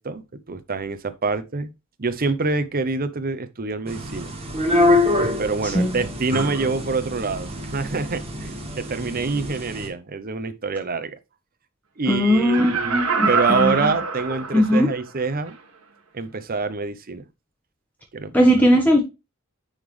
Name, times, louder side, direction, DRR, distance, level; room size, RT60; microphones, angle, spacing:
voice 1, 0.0-1.7 2.0-4.3 5.4-11.2 12.0-15.6 16.1-17.3 18.1-18.3, right 4 dB, 45° right, 0.8 m, -26 dB
sound 1, 3.9-9.9, left 2 dB, 30° right, 1.7 m, -25 dB
voice 2, 12.1-14.0 14.5-14.9 18.3-19.0, equal, 10° left, 1.1 m, -19 dB
Laughter, 12.3-15.0 15.5-15.6, right 4 dB, 80° right, 1.5 m, -25 dB
9.9 x 3.8 x 3.2 m
head